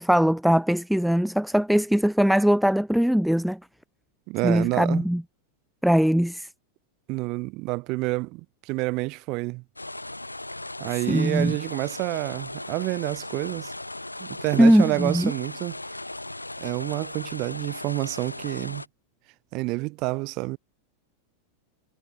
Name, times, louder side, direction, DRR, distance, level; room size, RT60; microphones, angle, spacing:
voice 1, 0.0-3.6 4.4-5.2 5.8-6.5 11.1-11.5 14.6-15.3, equal, ahead, 0.6 m, -21 dB
voice 2, 4.3-5.0 7.1-9.6 10.8-13.7 14.2-15.8 16.6-18.8 19.5-20.6, right 24 dB, 40° right, 1.0 m, -28 dB
sound 1, 9.8-18.9, left 2 dB, 85° left, 2.4 m, -37 dB
figure-of-eight pair, 90°, 0 cm